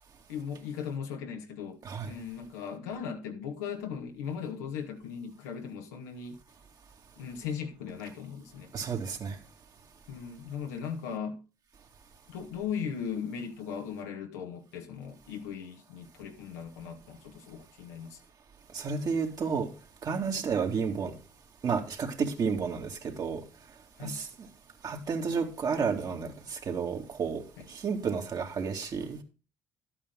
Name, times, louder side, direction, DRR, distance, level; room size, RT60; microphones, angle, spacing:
voice 1, 0.3-6.4 7.2-8.7 10.1-11.4 12.3-18.2 20.3-20.5 22.2-22.3 23.9-24.2 27.6-27.7, left 7 dB, 85° left, 1.8 m, -38 dB
voice 2, 8.7-9.4 18.7-19.7 20.0-21.1 21.6-23.4 24.0-24.3 24.8-27.4 27.7-29.2, right 5 dB, 50° right, 2.5 m, -31 dB
12.0 x 8.8 x 3.9 m
hypercardioid pair, 55°, 9 cm